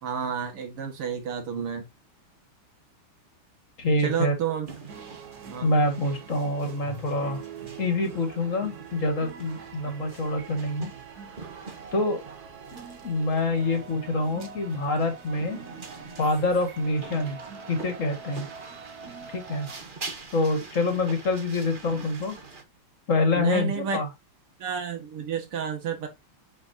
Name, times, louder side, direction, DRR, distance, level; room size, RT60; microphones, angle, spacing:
voice 1, 0.0-1.9 4.0-4.7 5.5-5.7 9.8-10.1 23.3-24.0 24.6-26.1, right 7 dB, 80° right, 2.7 m, -30 dB
voice 2, 3.8-4.4 5.6-7.4 7.8-10.9 11.9-12.2 13.0-15.6 16.2-17.4 17.7-18.5 19.3-19.7 20.3-22.4 23.1-24.1, left 2 dB, 35° left, 2.2 m, -26 dB
sound 1, 4.7-22.6, right 4 dB, 30° right, 1.1 m, -45 dB
sound 2, 4.9-19.8, right 6 dB, 50° right, 1.6 m, -44 dB
8.8 x 5.2 x 2.8 m
omnidirectional pair, 2.4 m